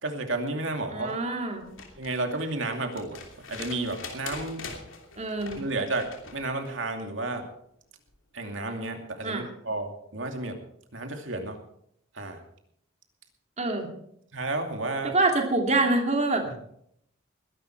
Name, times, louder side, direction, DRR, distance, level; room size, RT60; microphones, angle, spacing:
voice 1, 0.0-1.2 2.0-4.7 5.6-7.5 8.3-10.6 10.9-11.6 12.1-12.4 14.3-15.2 16.4-16.5, right 2 dB, 70° right, 4 dB, 2.5 m, -32 dB
voice 2, 0.9-1.7 5.2-5.6 9.2-9.5 13.6-13.9 15.0-16.4, right 2 dB, 35° right, 3 dB, 2.6 m, -26 dB
sound 1, 1.6-6.4 8.1-8.2, left 4 dB, 80° left, 2.9 m, -43 dB
21.0 x 11.5 x 4.6 m, 0.71 s
head